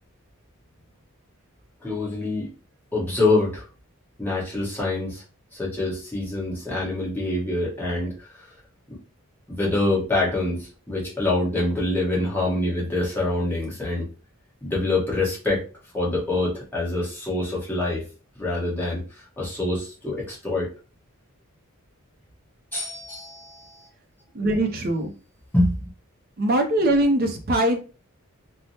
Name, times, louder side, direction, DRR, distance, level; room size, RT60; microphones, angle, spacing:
voice 1, 1.8-2.5 2.9-3.7 4.2-5.2 5.5-8.5 8.9-9.0 9.5-14.1 14.6-15.6 15.9-18.0 18.4-20.7 22.7-23.9 25.5-25.9, left 2 dB, 10° left, -5 dB, 1.0 m, -25 dB
voice 2, 24.3-25.1 26.4-27.8, right 1 dB, 45° right, 4 dB, 0.5 m, -21 dB
3.3 x 2.0 x 2.7 m, 0.35 s
head